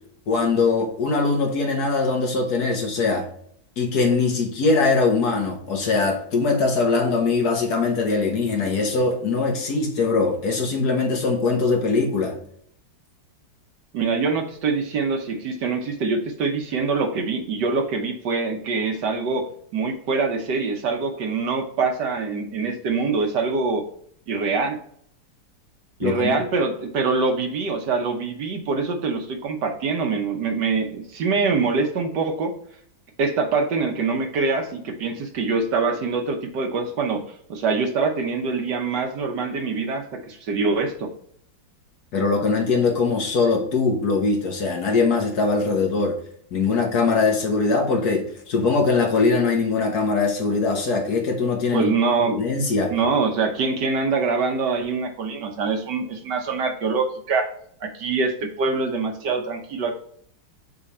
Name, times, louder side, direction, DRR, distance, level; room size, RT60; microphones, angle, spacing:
voice 1, 0.3-3.3 3.8-12.4 26.0-26.4 42.1-46.1 46.5-51.9 52.2-52.9, left 4 dB, 55° left, 2 dB, 1.7 m, -21 dB
voice 2, 13.9-23.8 24.3-24.8 26.0-32.5 33.2-37.2 37.5-41.1 51.7-52.4 52.9-57.5 57.8-60.0, right 4 dB, 65° right, 5 dB, 1.5 m, -24 dB
6.5 x 3.4 x 4.2 m, 0.63 s
omnidirectional pair, 2.0 m